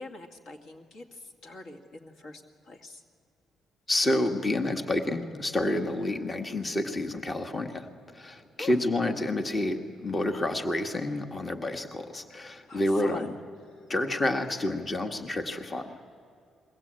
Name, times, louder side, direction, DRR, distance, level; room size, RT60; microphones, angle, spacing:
voice 1, 0.0-3.0 8.6-8.8 12.7-13.3, left 2 dB, 65° left, 3 dB, 2.2 m, -43 dB
voice 2, 3.9-13.3 13.9-16.0, left 1 dB, 30° left, 6 dB, 1.5 m, -29 dB
22.0 x 16.0 x 8.8 m, 2.4 s
cardioid pair, 90°, 0 cm